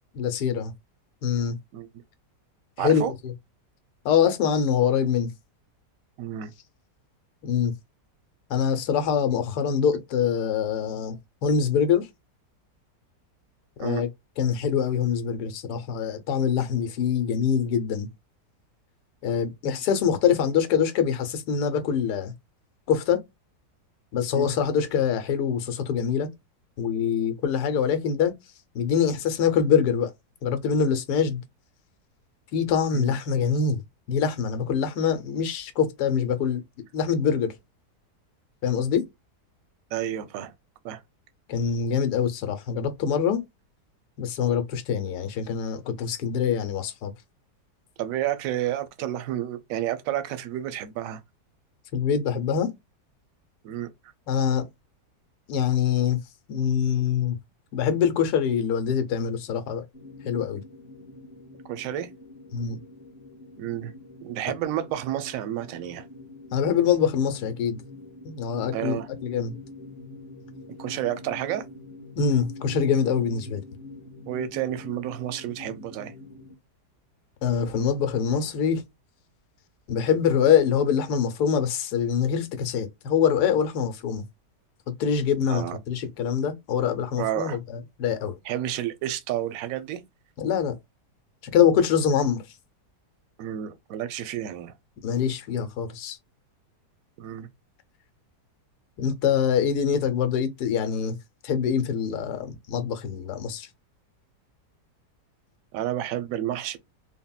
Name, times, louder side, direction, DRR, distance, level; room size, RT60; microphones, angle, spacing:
voice 1, 0.1-0.7 1.2-1.6 2.8-3.3 4.0-5.3 7.4-7.7 8.5-11.2 11.4-12.1 13.8-14.1 14.4-18.1 19.2-22.3 22.9-23.2 24.1-26.3 26.8-28.3 28.7-30.1 30.4-31.4 32.5-33.8 34.1-36.6 36.9-37.5 38.6-39.0 41.5-43.4 44.2-47.1 51.9-52.7 54.3-54.7 55.5-56.2 56.5-57.3 57.7-59.8 60.2-60.6 62.5-62.8 66.5-67.8 68.2-69.6 72.2-73.6 77.4-78.8 79.9-84.2 84.9-88.4 90.4-90.8 91.5-92.4 95.0-96.2 99.0-101.2 101.4-103.7, left 7 dB, 75° left, 1.2 m, -24 dB
voice 2, 2.8-3.1 6.2-6.5 13.8-14.0 24.3-24.5 32.9-33.2 39.9-40.5 40.8-41.0 48.0-51.2 53.6-53.9 61.7-62.1 63.6-63.9 64.2-66.1 68.7-69.1 70.8-71.6 74.3-76.1 85.5-85.8 87.2-87.6 88.4-90.0 93.4-94.7 97.2-97.5 105.7-106.8, right 12 dB, 70° right, 0.9 m, -30 dB
sound 1, 59.9-76.5, left 2 dB, 35° left, 0.7 m, -45 dB
3.6 x 2.1 x 2.3 m
omnidirectional pair, 1.8 m